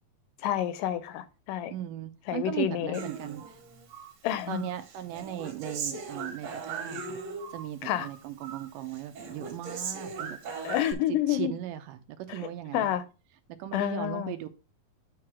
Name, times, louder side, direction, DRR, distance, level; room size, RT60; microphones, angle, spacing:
voice 1, 0.4-1.7 2.3-3.0 4.2-4.6 7.8-8.1 10.6-11.5 12.7-13.0 13.7-14.3, left 12 dB, 80° left, 2.0 m, -29 dB
voice 2, 1.7-3.6 4.5-7.2 7.5-10.4 10.9-11.0 11.3-13.0 13.6-14.5, right 12 dB, 75° right, 2.2 m, -37 dB
Human voice, 2.9-4.1 4.5-7.7 7.9-8.7 8.9-10.9, right 5 dB, 55° right, 2.5 m, -38 dB
9.4 x 3.2 x 6.0 m
omnidirectional pair, 4.0 m